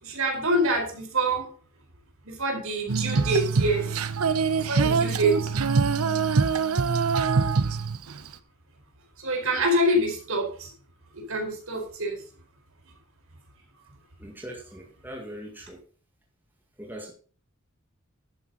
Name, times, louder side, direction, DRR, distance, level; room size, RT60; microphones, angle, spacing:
voice 1, 0.0-1.5 2.2-4.0 4.5-5.5 7.3-7.4 9.2-10.7 11.1-12.2, right 1 dB, 65° right, 2 dB, 4.7 m, -26 dB
Female singing, 2.9-8.3, right 5 dB, 85° right, 0.8 m, -24 dB
voice 2, 14.2-15.8 16.8-17.1, equal, 10° right, 0 dB, 2.0 m, -40 dB
11.0 x 9.6 x 4.1 m, 0.41 s
head